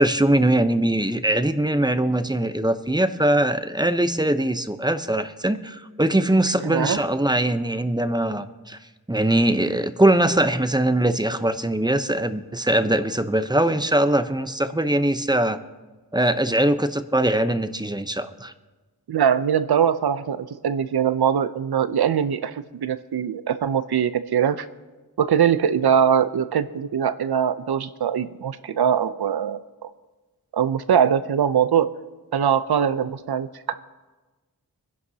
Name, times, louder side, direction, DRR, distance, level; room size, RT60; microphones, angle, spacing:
voice 1, 0.0-8.8 9.1-15.6 16.1-18.5, right 1 dB, 10° right, 10 dB, 0.7 m, -21 dB
voice 2, 6.6-7.0 19.1-24.7 25.2-29.9 30.5-31.9 32.3-33.7, right 8 dB, 85° right, 13 dB, 0.6 m, -22 dB
25.0 x 11.0 x 2.8 m, 1.2 s
wide cardioid pair, 55°, 37 cm